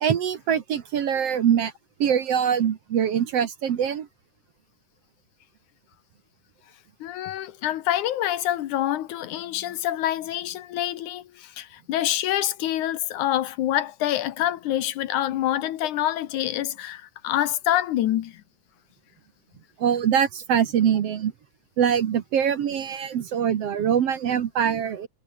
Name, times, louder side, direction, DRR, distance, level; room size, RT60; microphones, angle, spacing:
voice 1, 0.0-1.7 2.0-4.1 19.8-21.3 21.8-25.1, right 8 dB, 55° right, 2.1 m, -23 dB
voice 2, 7.0-18.4, left 12 dB, 70° left, 2.4 m, -26 dB
omnidirectional pair, 3.7 m